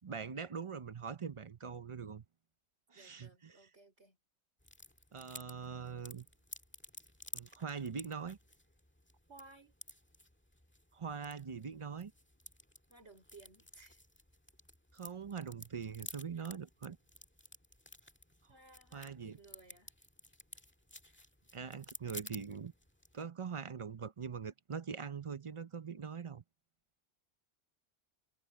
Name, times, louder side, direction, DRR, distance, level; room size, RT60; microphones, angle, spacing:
voice 1, 0.0-2.2 2.9-3.7 5.1-6.3 7.3-8.4 10.9-12.1 14.9-17.0 18.9-19.4 21.5-22.7 23.1-26.4, right 6 dB, 35° right, 0.6 m, -43 dB
voice 2, 2.9-4.2 9.3-9.7 12.9-14.0 16.4-16.5 18.5-19.9, right 3 dB, 85° right, 5.3 m, -59 dB
sound 1, 4.6-23.2, left 1 dB, 10° left, 1.6 m, -54 dB
omnidirectional pair, 1.1 m